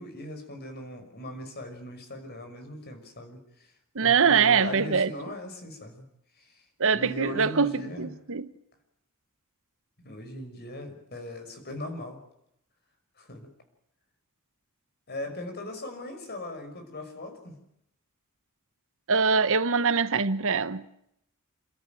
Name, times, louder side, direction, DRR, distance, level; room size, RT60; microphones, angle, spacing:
voice 1, 0.0-3.7 4.0-6.1 6.4-6.6 6.9-8.1 10.0-12.2 13.2-13.5 15.1-17.6, left 1 dB, 45° left, 6.0 m, -39 dB
voice 2, 3.9-5.1 6.8-8.5 19.1-20.8, right 5 dB, 65° right, 1.1 m, -23 dB
29.5 x 13.5 x 9.3 m
head